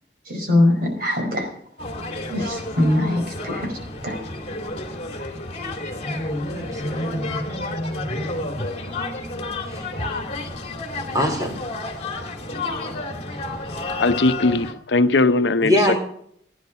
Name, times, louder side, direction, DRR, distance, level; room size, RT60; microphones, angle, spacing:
voice 1, 0.3-1.5 2.3-3.8 4.0-4.2, left 1 dB, 55° right, 3 dB, 4.8 m, -21 dB
sound 1, 1.8-14.7, left 2 dB, 35° left, 2.4 m, -30 dB
voice 2, 6.6-7.4 9.7-9.8 11.1-11.6 15.6-16.0, left 1 dB, 20° right, 2 dB, 4.0 m, -23 dB
voice 3, 14.0-16.0, left 3 dB, 85° left, 10 dB, 0.8 m, -19 dB
16.0 x 10.5 x 5.6 m, 0.66 s
head